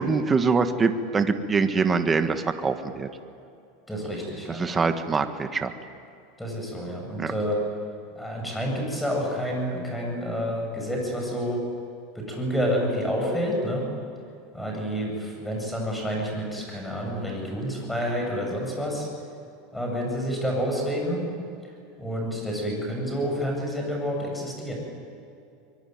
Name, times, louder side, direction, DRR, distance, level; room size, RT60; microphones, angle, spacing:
voice 1, 0.0-3.1 4.5-5.7 7.2-7.3, right 4 dB, 15° right, 8 dB, 1.4 m, -24 dB
voice 2, 3.9-4.6 6.4-7.6 8.1-11.6 12.1-13.8 14.5-19.1 19.7-21.2 22.0-24.7, equal, 5° left, 0 dB, 7.8 m, -29 dB
23.5 x 23.0 x 9.4 m, 2.6 s
supercardioid pair, 145°, 0 cm